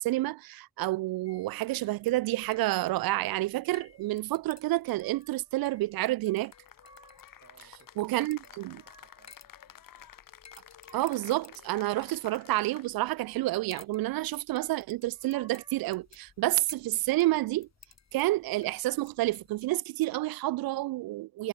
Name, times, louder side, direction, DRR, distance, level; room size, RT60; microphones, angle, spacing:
voice 1, 0.0-6.5 8.0-8.7 10.9-17.7 18.1-21.5, right 18 dB, 80° right, 0.6 m, -29 dB
sound 1, 1.2-19.8, left 6 dB, 50° left, 6.4 m, -58 dB
sound 2, 5.0-5.6 6.4-7.4 8.4-9.4 10.3-11.5 13.0-13.9 15.0-16.0, right 2 dB, 10° right, 4.3 m, -60 dB
Cheering / Applause, 6.4-13.2, left 10 dB, 65° left, 2.7 m, -52 dB
voice 2, 7.4-10.2, right 6 dB, 45° right, 7.8 m, -63 dB
cardioid pair, 75°, 35 cm